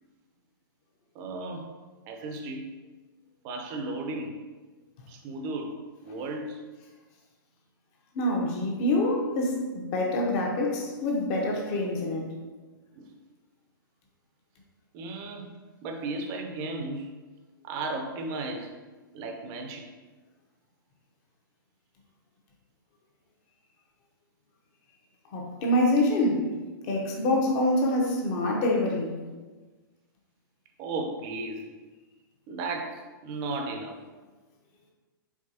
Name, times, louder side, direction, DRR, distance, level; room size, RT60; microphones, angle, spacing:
voice 1, 1.1-1.7 2.1-2.7 3.4-4.4 5.1-6.6 8.9-9.0 12.1-12.2 13.0-13.1 14.9-15.5 15.8-17.1 17.6-18.7 19.1-19.8 30.8-31.6 32.5-34.0, right 2 dB, 35° right, 4 dB, 0.6 m, -35 dB
voice 2, 8.1-12.3 25.3-26.5 26.8-29.2, left 1 dB, 35° left, 0 dB, 1.0 m, -26 dB
4.8 x 3.9 x 2.8 m, 1.3 s
figure-of-eight pair, 110°, 12 cm